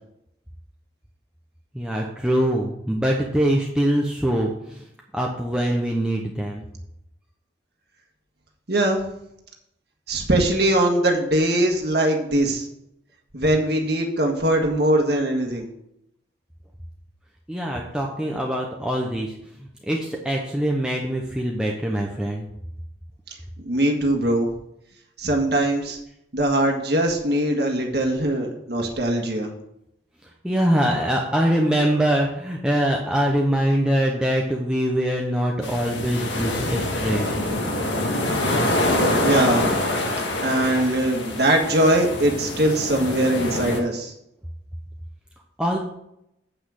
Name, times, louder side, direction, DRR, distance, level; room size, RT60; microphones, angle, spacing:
voice 1, 1.7-4.8 5.1-6.6 17.5-22.5 30.4-37.4 45.6-45.8, equal, 5° right, -1 dB, 0.8 m, -23 dB
voice 2, 8.7-9.0 10.1-12.7 13.3-15.7 23.6-24.5 25.2-26.0 26.3-29.5 39.2-39.6 40.4-44.1, right 1 dB, 60° right, 1 dB, 1.6 m, -21 dB
sound 1, 35.6-43.8, left 1 dB, 80° left, 1.7 m, -25 dB
8.6 x 5.9 x 6.4 m, 0.81 s
head